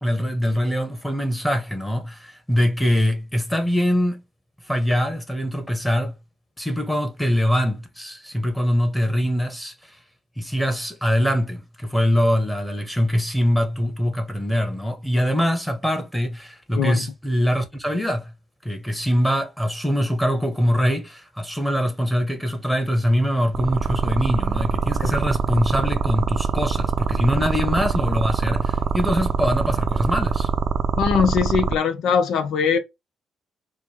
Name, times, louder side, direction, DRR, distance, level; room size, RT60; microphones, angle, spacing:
voice 1, 0.0-4.2 4.7-6.1 6.6-9.7 10.4-18.3 18.6-30.5, equal, 5° left, 1.1 m, -23 dB
voice 2, 16.8-17.1 25.0-25.1 31.0-32.8, left 6 dB, 80° left, 0.8 m, -21 dB
sound 1, 23.5-31.7, right 6 dB, 55° right, 0.5 m, -23 dB
4.7 x 2.3 x 3.3 m
cardioid pair, 90°, 0 cm